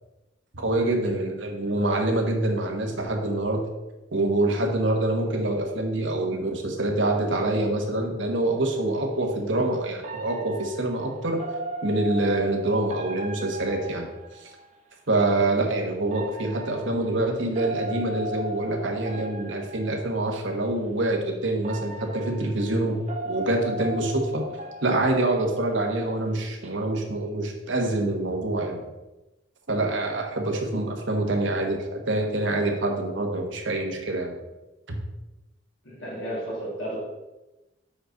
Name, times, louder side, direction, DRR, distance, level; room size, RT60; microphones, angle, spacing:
voice 1, 0.5-3.6 4.1-11.4 11.8-14.5 15.1-24.4 24.8-28.8 29.7-34.4 34.9-35.0, right 2 dB, 75° right, 2 dB, 1.4 m, -26 dB
sound 1, 8.5-8.7 10.0-14.8 16.0-20.3 21.1-21.2 21.6-26.0 26.4-26.7, right 1 dB, 40° right, 1.1 m, -38 dB
voice 2, 35.8-37.0, right 1 dB, 80° left, -7 dB, 2.6 m, -32 dB
7.8 x 5.2 x 4.0 m, 1.1 s
head